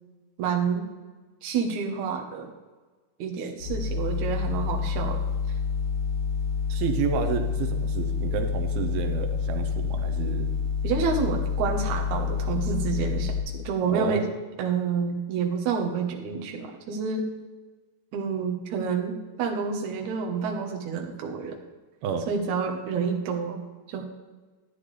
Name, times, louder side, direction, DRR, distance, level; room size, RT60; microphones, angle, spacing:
voice 1, 0.4-0.9 1.4-2.5 3.2-5.2 10.8-13.3 13.6-14.3 14.6-17.3 18.1-21.6 22.3-23.6 23.9-24.0, right 5 dB, 65° right, 2 dB, 2.2 m, -28 dB
sound 1, 3.6-13.4, left 6 dB, 50° left, 3.4 m, -28 dB
voice 2, 6.7-10.5 13.9-14.2 22.0-22.3, right 7 dB, 85° right, 6 dB, 2.7 m, -30 dB
13.0 x 9.3 x 3.3 m, 1.3 s
omnidirectional pair, 4.3 m